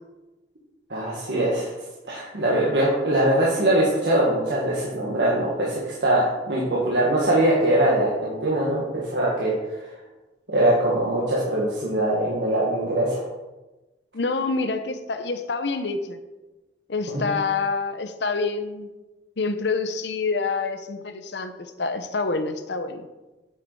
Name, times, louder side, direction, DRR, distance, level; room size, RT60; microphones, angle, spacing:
voice 1, 0.9-1.7 2.0-9.9 10.5-13.3 17.1-17.3, right 1 dB, 70° right, -5 dB, 1.8 m, -22 dB
voice 2, 14.1-16.2 16.9-18.9 19.4-23.1, left 4 dB, 70° left, 8 dB, 0.8 m, -27 dB
9.1 x 6.6 x 4.7 m, 1.1 s
head